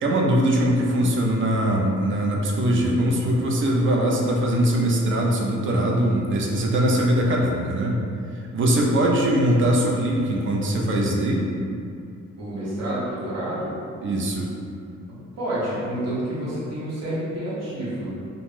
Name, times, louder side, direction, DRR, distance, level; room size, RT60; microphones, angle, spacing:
voice 1, 0.0-8.0 8.3-11.5 14.0-14.5, right 1 dB, 45° right, -1 dB, 0.4 m, -21 dB
voice 2, 12.4-13.8 15.1-18.1, right 1 dB, 60° right, -9 dB, 0.9 m, -29 dB
2.5 x 2.1 x 3.2 m, 2.5 s
wide cardioid pair, 155°, 29 cm